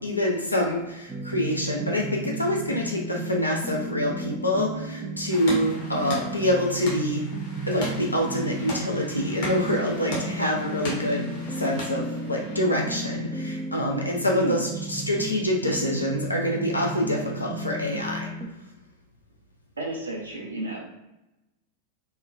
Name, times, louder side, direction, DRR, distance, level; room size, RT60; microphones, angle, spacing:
voice 1, 0.0-7.3 7.7-11.3 11.6-18.3, left 1 dB, 85° left, -1 dB, 0.4 m, -26 dB
sound 1, 1.1-18.5, right 2 dB, 15° right, 0.3 m, -34 dB
sound 2, 5.3-12.7, left 1 dB, 50° left, 0.8 m, -37 dB
voice 2, 14.3-14.6 19.8-20.8, right 2 dB, 75° right, -2 dB, 0.7 m, -31 dB
3.0 x 2.2 x 2.2 m, 0.95 s
figure-of-eight pair, 90°, 0 cm